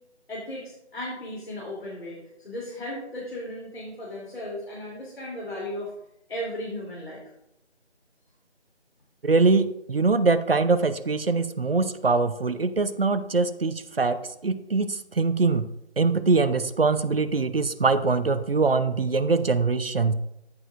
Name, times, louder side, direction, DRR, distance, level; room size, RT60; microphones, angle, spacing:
voice 1, 0.3-5.9 6.3-7.2, left 1 dB, 60° left, -5 dB, 3.2 m, -36 dB
voice 2, 9.2-15.7 16.0-20.1, right 4 dB, 55° right, 12 dB, 0.7 m, -23 dB
14.0 x 6.5 x 2.6 m, 0.82 s
figure-of-eight pair, 165°, 35 cm